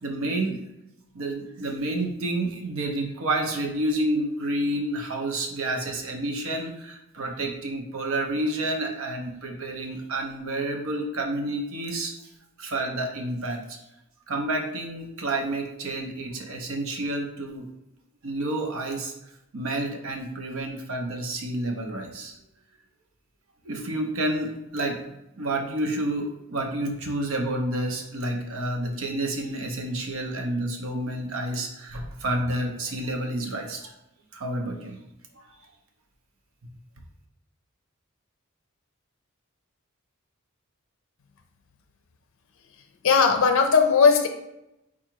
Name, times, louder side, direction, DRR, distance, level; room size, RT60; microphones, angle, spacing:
voice 1, 0.0-0.7 1.1-12.1 12.6-13.8 14.3-17.7 18.2-19.1 19.5-22.4 23.6-33.9 34.3-35.0 35.4-35.5, right 1 dB, 70° right, 3 dB, 0.8 m, -29 dB
voice 2, 43.0-44.3, left 5 dB, 65° left, 5 dB, 0.5 m, -18 dB
4.8 x 2.4 x 4.4 m, 0.88 s
head